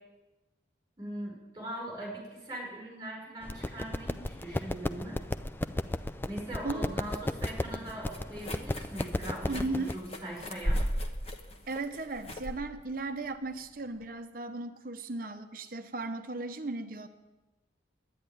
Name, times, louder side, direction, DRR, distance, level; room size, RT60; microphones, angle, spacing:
voice 1, 1.0-5.2 6.3-10.8, right 1 dB, 20° right, -2 dB, 5.7 m, -41 dB
sound 1, 3.4-9.9, left 1 dB, 10° left, 0.4 m, -35 dB
sound 2, 6.3-14.1, equal, 35° left, 1.2 m, -37 dB
voice 2, 6.6-6.9 9.5-10.0 11.7-17.1, right 2 dB, 50° right, 7 dB, 0.8 m, -36 dB
11.0 x 10.0 x 9.3 m, 1.1 s
head